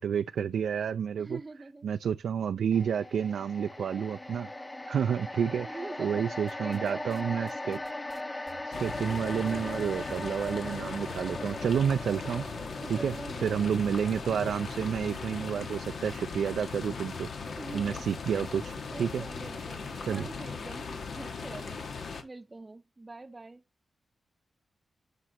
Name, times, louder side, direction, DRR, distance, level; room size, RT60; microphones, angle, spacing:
voice 1, 0.0-1.4 1.8-4.5 4.9-5.7 6.0-7.8 8.6-12.5 12.9-13.1 13.4-17.3 17.7-19.2 20.0-20.3, right 8 dB, 90° right, 0.4 m, -30 dB
voice 2, 1.2-1.9 3.8-4.1 5.6-7.6 12.8-14.3 17.6-18.1 18.9-21.9 22.2-23.6, right 2 dB, 20° right, 0.9 m, -44 dB
sound 1, 2.7-17.1 17.4-17.6, left 1 dB, 15° left, 0.7 m, -40 dB
sound 2, 6.5-7.2 7.5-11.2 11.5-12.2 12.5-20.3, right 6 dB, 50° right, 0.8 m, -53 dB
sound 3, 8.7-22.2, left 5 dB, 60° left, 1.7 m, -39 dB
11.5 x 6.2 x 3.0 m
wide cardioid pair, 130°, 0 cm